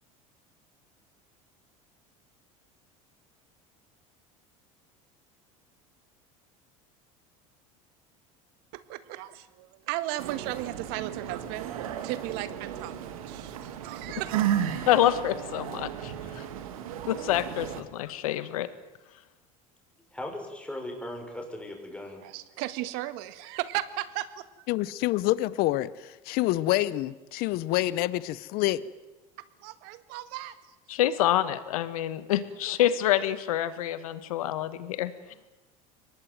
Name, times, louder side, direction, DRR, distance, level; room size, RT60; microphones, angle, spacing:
voice 1, 8.7-14.4 22.2-24.7 29.6-30.8, right 15 dB, 70° right, 1.8 m, -36 dB
sound 1, 10.2-17.8, right 10 dB, 85° right, 2.4 m, -34 dB
voice 2, 14.9-16.4 17.1-18.7 30.9-35.1, left 12 dB, 85° left, 1.6 m, -27 dB
voice 3, 20.1-22.2, left 1 dB, 5° left, 6.5 m, -38 dB
voice 4, 24.7-28.8, left 16 dB, 60° left, 0.9 m, -27 dB
23.5 x 19.5 x 9.4 m
supercardioid pair, 95°, 18 cm